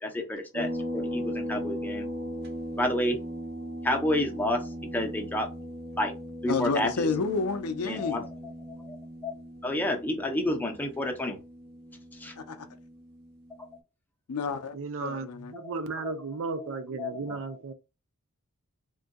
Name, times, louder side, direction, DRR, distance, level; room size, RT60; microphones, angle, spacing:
voice 1, 0.0-2.1 2.8-3.2 3.8-4.6 4.9-5.5 6.0-6.1 6.4-7.1 7.9-8.2 8.8-9.0 9.2-9.3 9.6-11.4 12.2-12.3 13.6-13.7 15.6-15.7 16.0-16.1 16.6-17.4, left 1 dB, 10° left, 0.6 m, -30 dB
sound 1, 0.5-13.6, equal, 45° right, 0.9 m, -38 dB
voice 2, 6.5-8.3 12.4-12.7 14.3-15.5, left 4 dB, 85° left, 0.5 m, -30 dB
voice 3, 14.7-17.7, right 4 dB, 65° right, 0.5 m, -35 dB
3.6 x 2.6 x 2.2 m
head